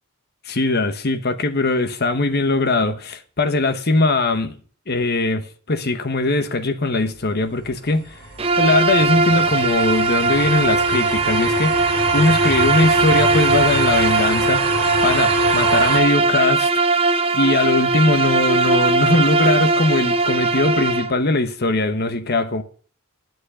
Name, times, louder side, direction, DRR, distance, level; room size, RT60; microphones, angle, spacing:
voice 1, 0.5-4.6 4.9-8.1 8.6-11.9 12.1-14.6 15.0-16.8 17.3-22.6, left 2 dB, 50° left, 1.2 m, -20 dB
sound 1, 7.2-16.0, right 3 dB, 65° right, 3.3 m, -28 dB
Bowed string instrument, 8.4-21.2, right 3 dB, 30° right, 0.7 m, -19 dB
10.0 x 6.3 x 8.4 m
head